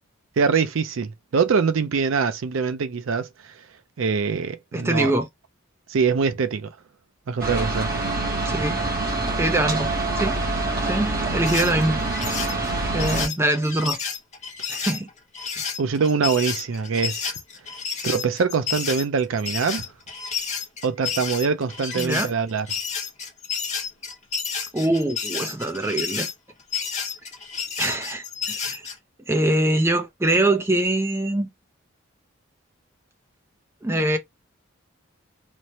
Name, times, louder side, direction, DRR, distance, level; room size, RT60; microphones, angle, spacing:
voice 1, 0.4-3.3 4.0-5.1 5.9-6.7 7.3-7.9 15.8-17.3 18.0-19.8 20.8-22.7, right 5 dB, 70° right, 0.4 m, -23 dB
voice 2, 4.7-5.3 8.4-8.8 9.4-9.9 10.2-10.4 10.8-12.0 12.9-14.0 14.7-15.1 15.6-15.7 22.0-22.3 24.7-26.3 27.8-28.8 29.3-31.5 33.8-34.2, right 1 dB, 10° right, 0.4 m, -23 dB
sound 1, 7.4-13.3, right 2 dB, 45° right, 0.9 m, -25 dB
sound 2, 11.4-28.9, left 6 dB, 35° left, 0.8 m, -30 dB
3.1 x 2.1 x 2.7 m
head